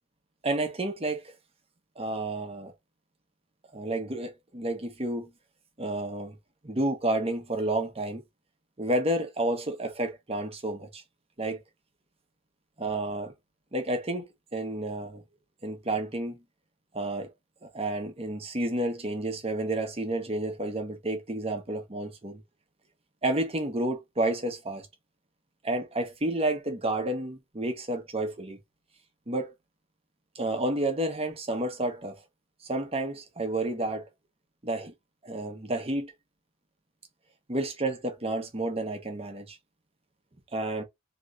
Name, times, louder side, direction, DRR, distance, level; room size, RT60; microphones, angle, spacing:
voice 1, 0.4-1.2 2.0-2.7 3.7-5.3 5.8-6.4 6.6-8.2 8.8-11.0 11.4-11.6 12.8-13.3 13.7-15.2 15.6-16.4 16.9-17.3 17.6-22.4 23.2-24.9 25.6-28.6 29.3-29.5 30.3-32.2 32.6-34.0 34.6-34.9 35.2-36.1 37.5-39.6 40.5-40.8, right 1 dB, 30° right, 0.9 m, -30 dB
3.0 x 2.9 x 2.4 m
head